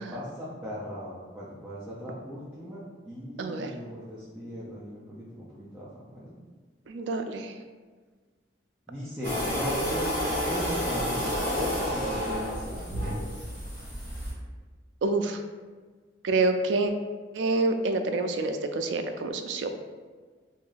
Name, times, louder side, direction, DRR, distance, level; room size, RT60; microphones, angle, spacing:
voice 1, 0.0-2.8 3.1-6.3 8.9-10.1 10.4-12.8 13.1-13.4, equal, 10° right, -9 dB, 0.5 m, -37 dB
voice 2, 3.4-3.7 6.9-7.5 15.0-15.4 16.2-16.9 17.3-19.8, right 3 dB, 80° right, 6 dB, 0.4 m, -27 dB
sound 1, 9.2-14.3, equal, 10° left, 1.2 m, -30 dB
3.0 x 2.6 x 3.9 m, 1.5 s
head